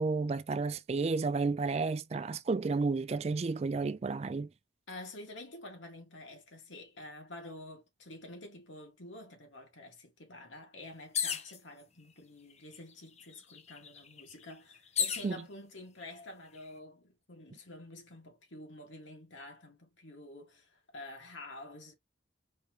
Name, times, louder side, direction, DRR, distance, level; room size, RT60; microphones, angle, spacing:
voice 1, 0.0-4.5 15.2-15.4, right 4 dB, 35° right, 0.3 m, -31 dB
voice 2, 4.9-21.9, left 2 dB, 85° left, 2.0 m, -49 dB
sound 1, 11.1-11.6 12.5-12.6 12.9-15.3 16.1-16.6, left 7 dB, 35° left, 0.8 m, -34 dB
4.4 x 3.6 x 3.0 m
head